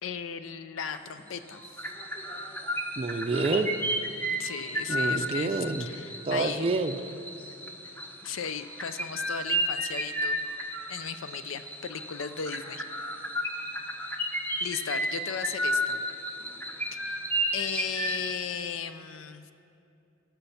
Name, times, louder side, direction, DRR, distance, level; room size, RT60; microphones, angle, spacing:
voice 1, 0.0-1.6 4.4-6.7 7.8-7.9 8.2-10.4 10.9-12.8 14.6-16.0 16.9-17.2 17.5-19.5, left 7 dB, 85° left, 11 dB, 0.5 m, -36 dB
sound 1, 0.9-1.2 1.5-18.3, right 1 dB, 10° left, 0.9 m, -33 dB
voice 2, 3.0-3.7 4.9-5.9 6.3-7.0, right 3 dB, 30° right, 4 dB, 0.4 m, -28 dB
18.0 x 7.0 x 5.8 m, 2.6 s
head